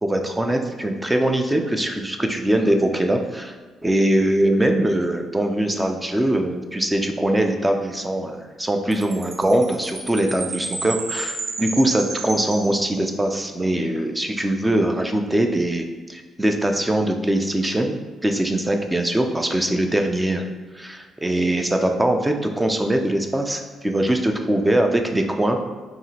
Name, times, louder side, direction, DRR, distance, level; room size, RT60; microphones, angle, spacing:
voice 1, 0.0-3.5 3.8-18.0 18.2-20.4 20.7-25.6, right 1 dB, 10° right, 4 dB, 0.4 m, -22 dB
Chime, 8.9-13.4, right 3 dB, 55° right, 0.6 m, -32 dB
4.7 x 2.9 x 2.8 m, 1.3 s
cardioid pair, 90°, 0 cm